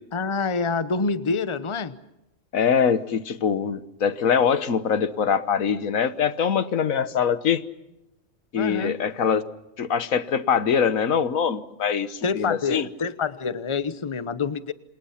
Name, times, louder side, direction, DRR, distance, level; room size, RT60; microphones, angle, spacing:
voice 1, 0.1-2.0 8.5-9.0 12.2-14.7, left 4 dB, 25° left, 14 dB, 0.9 m, -27 dB
voice 2, 2.5-7.6 8.5-9.4 9.8-12.9, left 7 dB, 90° left, 13 dB, 1.6 m, -23 dB
28.0 x 27.5 x 5.8 m, 0.90 s
omnidirectional pair, 1.4 m